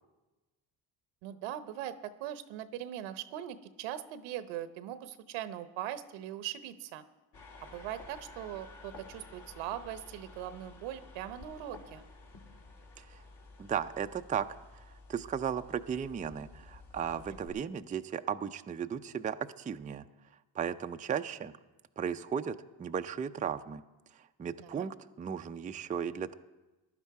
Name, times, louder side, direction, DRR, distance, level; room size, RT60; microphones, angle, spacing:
voice 1, 1.2-7.0 7.6-12.0 24.6-24.9, right 11 dB, 80° right, 13 dB, 0.9 m, -41 dB
sound 1, 7.3-17.5, left 3 dB, 60° left, 2.9 m, -52 dB
voice 2, 13.6-14.5 14.7-14.8 15.1-20.1 20.5-21.5 22.0-23.8 24.1-26.3, right 7 dB, 20° right, 8 dB, 0.4 m, -35 dB
15.5 x 11.0 x 4.7 m, 1.1 s
supercardioid pair, 80°, 47 cm